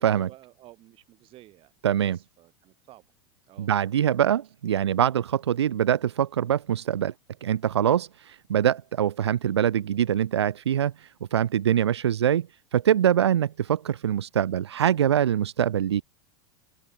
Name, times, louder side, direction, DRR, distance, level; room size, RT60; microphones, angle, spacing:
voice 1, 0.2-1.7 2.0-3.1 3.5-3.7, right 15 dB, 40° right, 1.9 m, -52 dB
voice 2, 1.8-2.2 3.6-7.1 7.4-16.0, right 10 dB, 85° right, 0.5 m, -24 dB
open air
hypercardioid pair, 100°, 14 cm